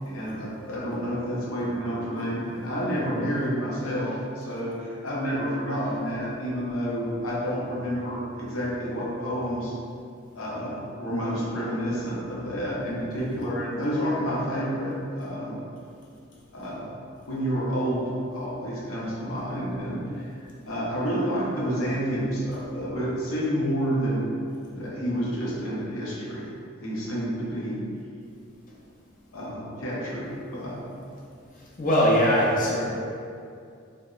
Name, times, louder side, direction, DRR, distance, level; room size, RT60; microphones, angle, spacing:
voice 1, 0.0-9.7 10.3-15.6 16.5-17.0 17.3-20.3 20.6-24.3 24.6-26.5 26.8-27.9 29.3-30.8, equal, 80° left, -6 dB, 0.7 m, -29 dB
voice 2, 13.1-13.4 31.6-32.9, equal, 40° left, -5 dB, 0.5 m, -22 dB
2.8 x 2.1 x 2.3 m, 2.4 s
head